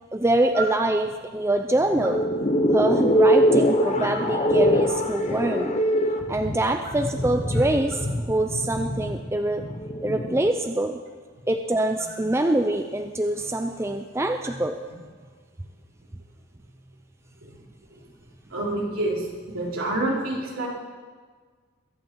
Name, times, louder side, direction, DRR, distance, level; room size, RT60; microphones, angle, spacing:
voice 1, 0.1-2.2 2.7-5.7 6.3-9.6 10.0-11.0 11.5-14.8, right 1 dB, 10° right, 5 dB, 0.5 m, -24 dB
sound 1, 1.7-10.5, equal, 30° left, 1.1 m, -23 dB
voice 2, 18.5-20.7, right 2 dB, 75° right, -3 dB, 3.5 m, -28 dB
23.0 x 8.3 x 4.6 m, 1.5 s
head